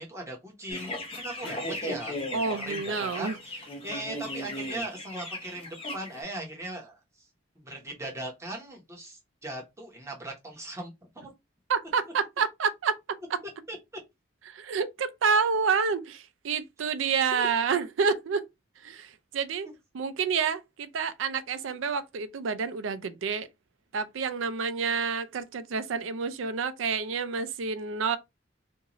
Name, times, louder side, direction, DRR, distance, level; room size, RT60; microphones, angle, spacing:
voice 1, 0.0-7.0 7.6-11.3 13.7-13.8 17.3-17.5, right 1 dB, 15° right, 1.0 m, -39 dB
sound 1, 0.7-6.2, left 1 dB, 30° left, 0.8 m, -37 dB
voice 2, 2.3-3.4 11.7-12.9 13.3-13.4 14.5-18.5 18.8-19.7 19.9-23.5 23.9-28.2, right 5 dB, 85° right, 0.4 m, -28 dB
2.6 x 2.4 x 3.0 m
head